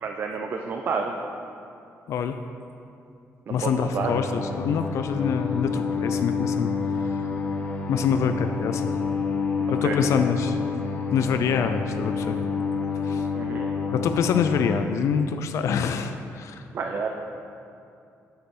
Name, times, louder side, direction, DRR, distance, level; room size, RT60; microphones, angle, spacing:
voice 1, 0.0-1.1 3.5-4.1 9.8-10.0 13.3-13.7 16.7-17.1, right 5 dB, 40° right, 3 dB, 0.4 m, -29 dB
voice 2, 2.1-2.4 3.5-6.7 7.9-9.0 9.7-10.6 11.1-12.4 13.0-13.3 13.9-16.6, left 6 dB, 60° left, 8 dB, 0.3 m, -25 dB
sound 1, 3.9-14.8, left 5 dB, 30° left, 0.8 m, -28 dB
7.0 x 5.3 x 6.0 m, 2.6 s
wide cardioid pair, 175°, 6 cm